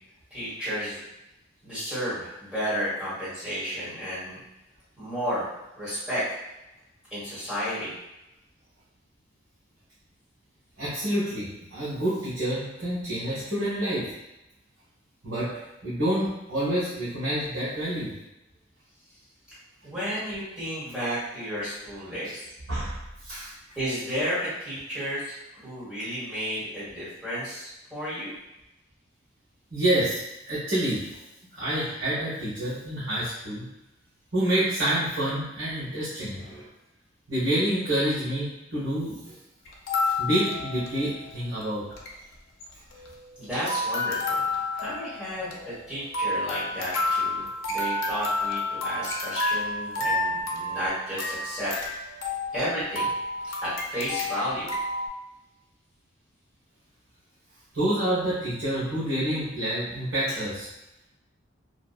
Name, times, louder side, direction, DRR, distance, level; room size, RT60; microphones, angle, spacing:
voice 1, 0.3-1.0 1.6-4.4 5.0-5.5 5.8-6.2 7.1-7.9 19.5-19.6 19.8-22.5 23.8-28.3 43.4-44.4 44.7-51.7 52.5-53.1 53.4-54.7, equal, 5° right, -12 dB, 1.2 m, -32 dB
voice 2, 10.8-14.1 15.2-18.1 22.2-22.3 22.7-23.5 29.7-31.1 31.5-33.6 34.3-36.7 37.3-39.3 40.2-41.9 57.7-60.7, right 1 dB, 70° right, -11 dB, 1.0 m, -28 dB
sound 1, 39.7-41.3 41.6-41.7 41.9-42.1 42.6-43.4 43.7-55.1, left 2 dB, 75° left, 0.5 m, -30 dB
2.7 x 2.2 x 2.3 m, 0.93 s
head